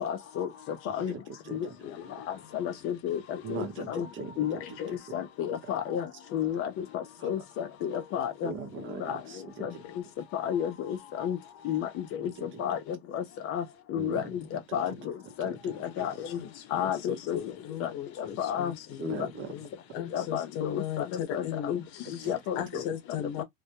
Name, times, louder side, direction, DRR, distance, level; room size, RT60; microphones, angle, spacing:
voice 1, 0.0-0.5 0.9-1.1 1.5-1.7 2.5-4.1 4.4-6.1 6.3-8.5 9.0-9.2 9.6-9.7 10.3-11.4 11.6-11.9 12.2-12.3 12.6-12.8 13.1-13.6 13.9-14.2 14.7-14.9 15.4-15.5 16.0-16.1 16.7-17.4 17.8-17.9 18.2-18.7 19.0-19.1 20.1-21.0 21.3-21.8 22.3-22.8, left 9 dB, 50° left, 0.5 m, -31 dB
voice 2, 0.9-1.7 3.4-5.0 7.2-7.3 8.4-9.8 12.2-12.6 13.9-14.4 14.7-15.1 15.4-16.1 19.0-19.5 22.2-22.4 22.7-22.8, right 5 dB, 40° right, 0.7 m, -41 dB
voice 3, 16.4-19.7 19.9-22.1 22.6-23.4, left 10 dB, 70° left, 1.0 m, -37 dB
2.1 x 2.1 x 2.8 m
supercardioid pair, 120°, 29 cm